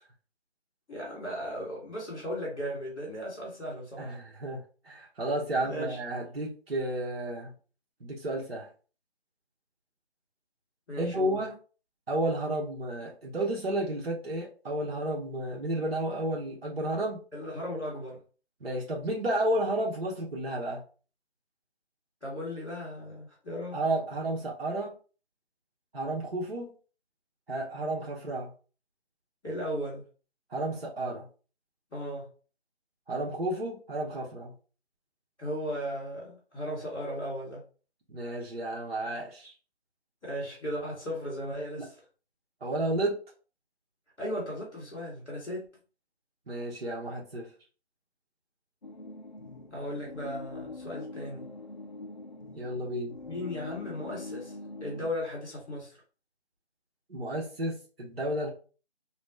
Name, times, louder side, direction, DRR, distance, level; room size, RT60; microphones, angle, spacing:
voice 1, 0.9-4.2 5.6-6.0 10.9-11.4 17.3-18.2 22.2-23.8 29.4-30.0 31.9-32.3 35.4-37.6 40.2-42.0 44.2-45.7 49.7-51.5 53.2-56.0, equal, 5° right, 0.9 m, -36 dB
voice 2, 4.0-7.5 8.0-8.7 11.0-11.5 12.1-17.2 18.6-20.8 23.7-24.9 25.9-26.7 27.5-28.5 30.5-31.3 33.1-34.5 38.1-39.5 41.8-41.9 42.6-43.2 46.5-47.5 52.6-53.2 57.1-58.5, right 1 dB, 65° right, 1.1 m, -32 dB
sound 1, 48.8-55.1, left 3 dB, 45° left, 0.4 m, -43 dB
3.0 x 2.3 x 3.1 m
figure-of-eight pair, 165°, 33 cm